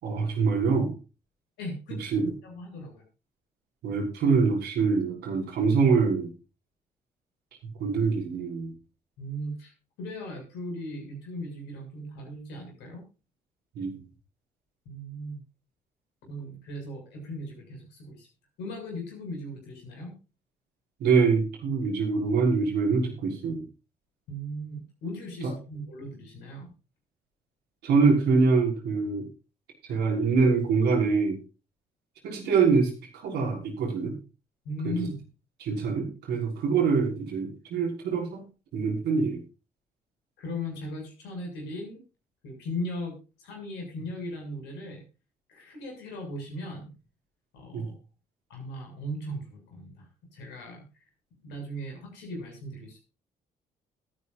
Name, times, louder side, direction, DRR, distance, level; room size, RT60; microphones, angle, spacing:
voice 1, 0.0-0.9 2.0-2.2 3.8-6.3 7.8-8.7 13.8-14.0 21.0-23.6 25.4-25.5 27.8-29.3 29.9-31.4 32.2-32.9 33.2-34.2 34.8-35.0 35.6-38.4 38.7-39.4 47.7-47.9, right 4 dB, 60° right, 0 dB, 5.8 m, -24 dB
voice 2, 1.6-3.0 9.2-9.7 10.0-13.0 14.9-15.4 16.3-18.3 18.6-20.1 24.3-26.7 34.7-35.2 40.4-42.0 42.4-45.0 45.5-46.9 47.5-47.9 48.5-50.8 51.4-53.0, equal, 65° left, 2 dB, 7.2 m, -38 dB
21.5 x 9.5 x 2.6 m, 0.32 s
figure-of-eight pair, 45°, 19 cm